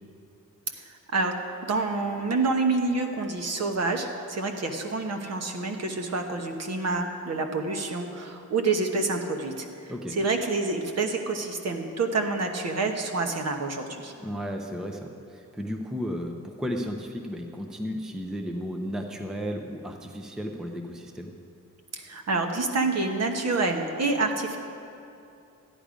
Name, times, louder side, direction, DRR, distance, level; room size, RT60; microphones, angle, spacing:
voice 1, 0.8-1.3 1.6-14.1 22.0-24.6, right 3 dB, 50° right, 4 dB, 1.1 m, -28 dB
voice 2, 14.2-21.3, equal, ahead, 3 dB, 0.6 m, -34 dB
13.5 x 10.0 x 5.1 m, 2.7 s
wide cardioid pair, 180°, 33 cm